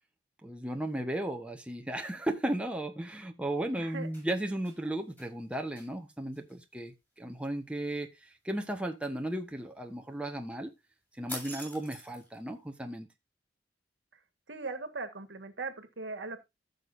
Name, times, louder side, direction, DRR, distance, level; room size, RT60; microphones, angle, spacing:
voice 1, 0.4-10.7 11.2-13.1, right 1 dB, 5° right, 1.2 m, -35 dB
voice 2, 3.8-4.1 4.4-4.5 14.5-16.4, right 3 dB, 70° right, 1.6 m, -39 dB
sound 1, 3.9-4.8 5.2-5.3 5.8-5.9 6.3-6.5 11.3-12.4, equal, 10° left, 7.2 m, -44 dB
15.0 x 6.6 x 2.6 m
head